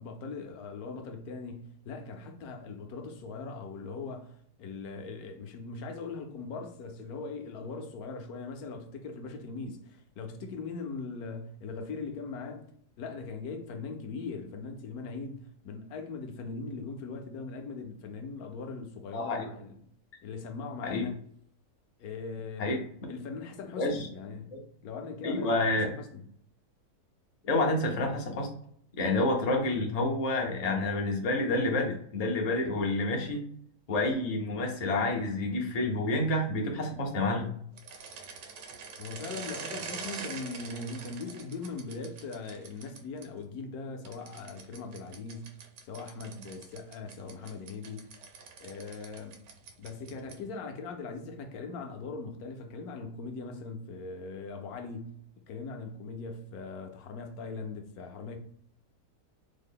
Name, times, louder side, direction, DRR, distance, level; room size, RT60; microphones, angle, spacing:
voice 1, 0.0-12.7 13.0-19.8 20.2-21.2 22.0-22.7 23.1-26.3 39.0-48.1 48.6-49.4 49.8-55.2 55.5-58.4, left 4 dB, 70° left, 1.1 m, -40 dB
voice 2, 19.1-19.4 20.8-21.1 22.6-22.8 23.8-24.1 24.5-24.6 25.2-25.8 27.4-28.5 29.0-33.4 33.9-37.5, left 2 dB, 50° left, 0.4 m, -29 dB
sound 1, 37.7-43.3 44.1-50.5, right 5 dB, 70° right, 1.1 m, -44 dB
3.6 x 2.1 x 3.5 m
omnidirectional pair, 1.7 m